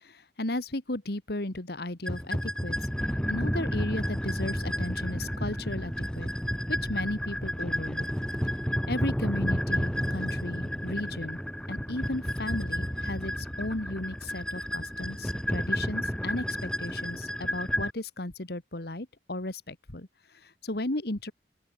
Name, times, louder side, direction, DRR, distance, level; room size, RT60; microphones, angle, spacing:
voice 1, 0.0-6.3 6.7-8.1 8.9-11.4 11.7-21.3, left 1 dB, 60° left, 2.0 m, -35 dB
sound 1, 2.1-17.9, equal, 5° left, 2.3 m, -31 dB
open air
head